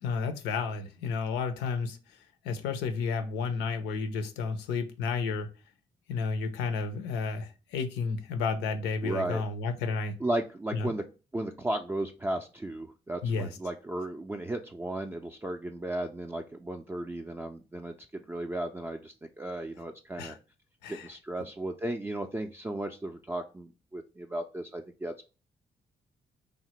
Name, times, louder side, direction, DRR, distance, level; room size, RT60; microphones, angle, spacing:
voice 1, 0.0-2.2 2.4-5.5 6.1-10.2 10.7-10.9 13.2-13.6 20.2-20.4 20.8-21.1, left 5 dB, 85° left, 0.5 m, -32 dB
voice 2, 9.0-9.4 10.2-11.0 11.3-20.4 20.9-25.2, right 1 dB, 15° right, 0.4 m, -35 dB
3.2 x 2.1 x 2.9 m
supercardioid pair, 50°, 17 cm